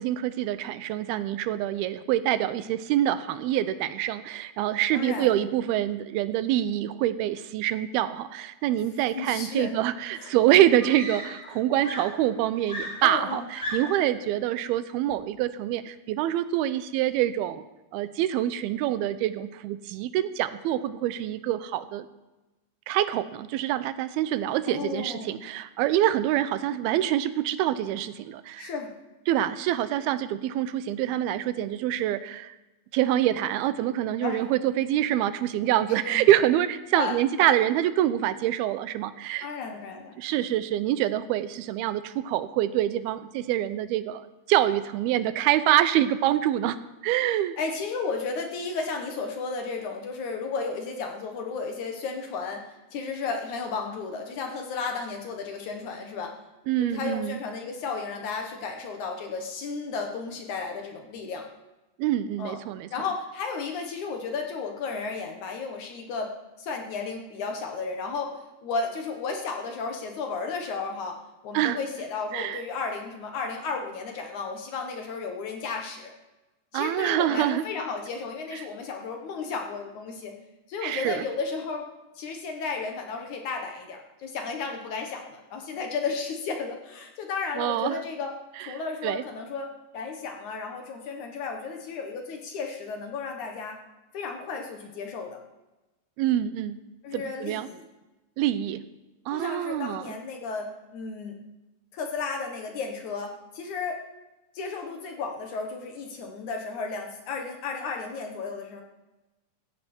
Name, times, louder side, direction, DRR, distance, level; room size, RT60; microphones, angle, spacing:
voice 1, 0.0-17.6 17.9-22.1 22.9-28.7 29.3-32.6 32.9-39.5 40.2-46.8 47.0-47.6 56.7-57.4 62.0-62.9 71.5-71.8 72.3-72.6 76.7-77.6 80.8-81.2 87.6-88.0 88.6-88.7 89.0-89.2 96.2-96.8 97.1-97.7 98.4-98.8 99.3-100.2, right 12 dB, 85° right, 13 dB, 2.6 m, -26 dB
voice 2, 4.9-5.3 8.7-9.8 10.1-10.3 11.5-11.6 13.0-13.5 24.7-25.4 28.6-28.9 34.2-34.5 36.0-36.2 36.9-37.1 37.4-37.5 39.4-40.2 45.7-45.8 47.6-52.6 52.9-56.3 56.8-61.5 62.4-62.6 62.9-76.1 76.7-80.3 80.7-81.9 82.2-88.3 88.7-93.8 94.1-95.4 97.0-97.8 99.3-101.3 101.9-104.0 104.5-108.8, left 4 dB, 60° left, 3 dB, 2.4 m, -33 dB
Screaming, 10.0-10.1 10.8-11.6 11.8-14.1 15.1-15.4, left 1 dB, 15° left, 3.7 m, -36 dB
16.5 x 14.5 x 4.4 m, 1.0 s
omnidirectional pair, 4.3 m